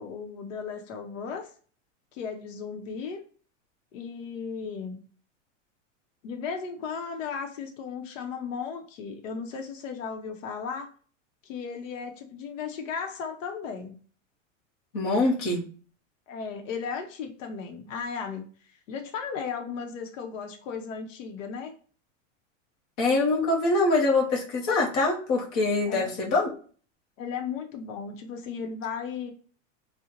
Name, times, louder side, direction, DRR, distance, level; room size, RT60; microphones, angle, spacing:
voice 1, 0.0-1.5 2.1-3.2 3.9-5.0 6.2-10.9 11.4-14.0 16.3-18.5 18.9-21.7 25.9-26.1 27.2-29.3, left 6 dB, 80° left, 3 dB, 0.7 m, -35 dB
voice 2, 14.9-15.6 23.0-26.5, left 2 dB, 30° left, -2 dB, 0.6 m, -24 dB
3.7 x 2.1 x 2.7 m, 0.42 s
supercardioid pair, 180°, 38 cm